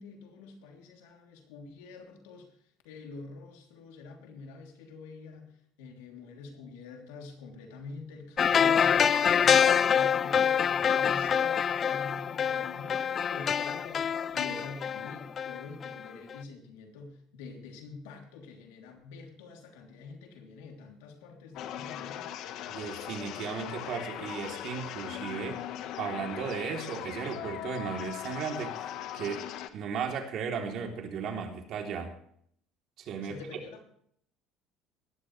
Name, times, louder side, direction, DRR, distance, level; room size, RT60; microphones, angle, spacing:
voice 1, 0.0-2.6 2.8-22.3 33.2-33.8, left 4 dB, 90° left, 2 dB, 3.1 m, -46 dB
sound 1, 8.4-16.0 16.3-16.4, left 7 dB, 40° left, 0.5 m, -26 dB
sound 2, 21.5-29.7, left 11 dB, 65° left, 1.3 m, -39 dB
voice 2, 22.7-25.6 26.0-28.8 29.1-29.5 29.7-32.1 33.0-33.4, right 6 dB, 55° right, 2 dB, 3.2 m, -35 dB
17.5 x 13.5 x 3.3 m, 0.66 s
supercardioid pair, 100°, 0 cm